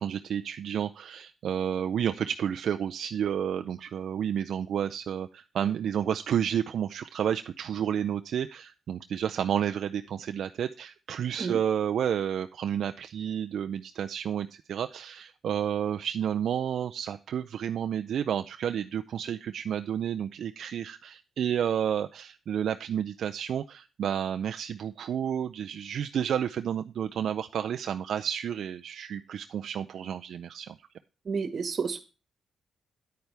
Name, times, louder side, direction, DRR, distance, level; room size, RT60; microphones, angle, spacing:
voice 1, 0.0-30.8, right 9 dB, 70° right, 8 dB, 0.5 m, -31 dB
voice 2, 31.2-32.0, right 5 dB, 45° right, 11 dB, 1.5 m, -30 dB
9.5 x 8.8 x 3.4 m, 0.31 s
cardioid pair, 105°, 0 cm